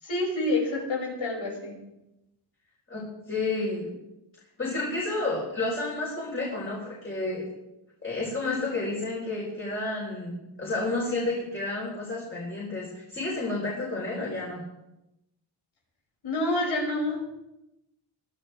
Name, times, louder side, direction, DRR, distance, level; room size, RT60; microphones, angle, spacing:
voice 1, 0.0-1.8 16.2-17.3, left 2 dB, 75° left, -2 dB, 6.4 m, -28 dB
voice 2, 2.9-3.9 4.6-7.4 8.0-14.6, left 2 dB, 25° left, -4 dB, 4.2 m, -31 dB
22.5 x 13.0 x 3.5 m, 0.91 s
wide cardioid pair, 125°, 47 cm